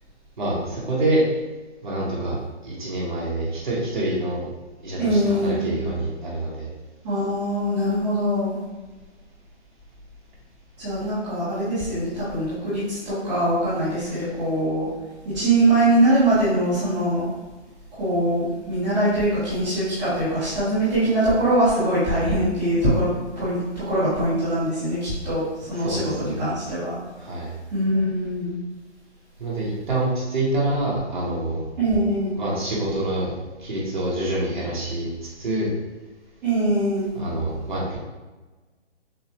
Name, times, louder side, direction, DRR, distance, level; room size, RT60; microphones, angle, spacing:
voice 1, 0.4-1.3 1.8-4.5 4.8-6.7 25.7-26.5 27.1-27.5 29.4-31.7 32.4-35.7 37.1-38.0, right 1 dB, 40° right, -6 dB, 1.4 m, -26 dB
voice 2, 5.0-5.7 7.0-8.5 10.8-14.9 15.3-17.3 17.9-27.0 27.7-28.5 31.8-32.4 36.4-37.1, right 1 dB, 5° right, -18 dB, 1.0 m, -22 dB
6.7 x 2.4 x 3.0 m, 1.2 s
hypercardioid pair, 175°, 35 cm